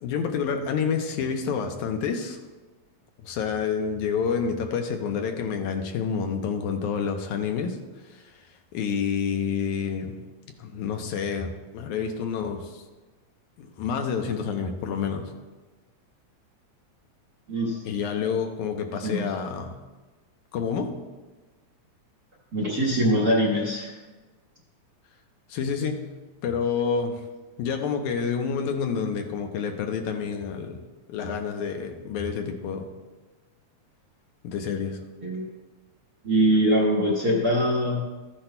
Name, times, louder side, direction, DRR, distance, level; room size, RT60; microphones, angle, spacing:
voice 1, 0.0-2.4 3.2-7.8 8.1-8.2 8.7-10.2 10.6-12.7 13.6-15.3 17.9-19.8 20.5-21.0 25.5-26.1 26.4-27.3 27.6-30.8 31.1-32.9 34.4-35.0, left 6 dB, 80° left, 4 dB, 2.2 m, -28 dB
voice 2, 17.5-17.8 19.0-19.2 22.5-23.9 35.2-35.4 36.2-38.0, equal, 50° right, -4 dB, 1.2 m, -23 dB
14.0 x 10.0 x 2.2 m, 1.2 s
omnidirectional pair, 3.4 m